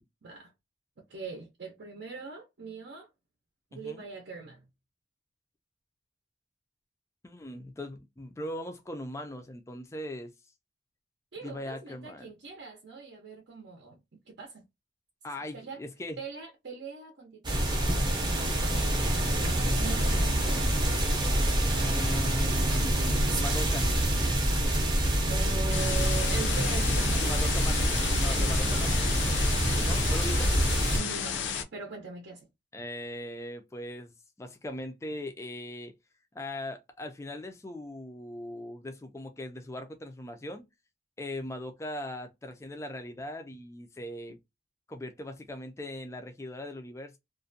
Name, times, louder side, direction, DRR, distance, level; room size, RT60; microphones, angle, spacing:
voice 1, 0.2-0.5 1.0-3.1 3.7-4.6 11.3-14.7 15.5-15.8 16.2-20.7 25.3-27.3 28.6-28.9 30.9-31.4 31.7-32.5, right 4 dB, 70° right, 0.6 m, -42 dB
voice 2, 3.7-4.0 7.2-10.3 11.4-12.3 15.2-16.2 21.8-23.9 27.2-29.0 29.8-30.6 32.7-34.1 34.4-36.0 36.3-40.7 41.2-44.4 44.9-47.2, left 1 dB, 15° left, 0.3 m, -39 dB
sound 1, 17.4-31.0, right 1 dB, 25° right, 0.6 m, -26 dB
sound 2, 25.7-31.6, left 7 dB, 80° left, 0.5 m, -32 dB
2.4 x 2.1 x 2.5 m
head